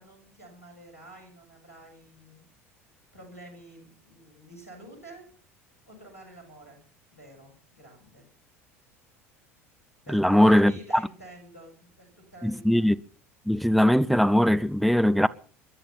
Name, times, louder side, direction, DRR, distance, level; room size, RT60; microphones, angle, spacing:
voice 1, 0.0-2.5 3.1-5.3 5.9-6.8 7.1-8.3 8.8-9.1 10.1-12.9, right 1 dB, 90° left, 7.5 m, -49 dB
voice 2, 10.1-10.7 12.4-12.9 13.5-15.3, equal, ahead, 0.8 m, -20 dB
22.0 x 11.0 x 5.7 m
figure-of-eight pair, 70°, 8 cm